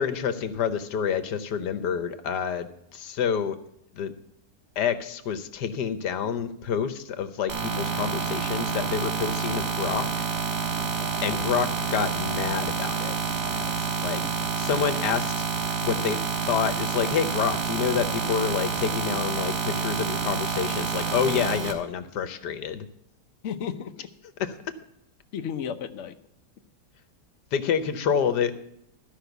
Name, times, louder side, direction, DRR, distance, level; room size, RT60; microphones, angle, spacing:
voice 1, 0.0-3.6 3.9-4.1 4.8-10.1 11.2-13.1 14.0-14.2 14.6-15.4 15.8-16.2 16.5-22.8 24.4-24.5 27.5-28.6, left 7 dB, 75° left, 11 dB, 1.5 m, -28 dB
sound 1, 7.5-21.7, right 5 dB, 75° right, 2.1 m, -28 dB
voice 2, 10.8-11.3 13.5-14.4 23.4-24.1 25.3-26.2, left 8 dB, 55° left, 7 dB, 0.9 m, -36 dB
sound 2, 16.0-16.4 18.3-19.1 19.4-19.5 24.5-24.6, right 1 dB, 35° right, 5.1 m, -48 dB
13.5 x 5.7 x 7.9 m, 0.76 s
omnidirectional pair, 1.8 m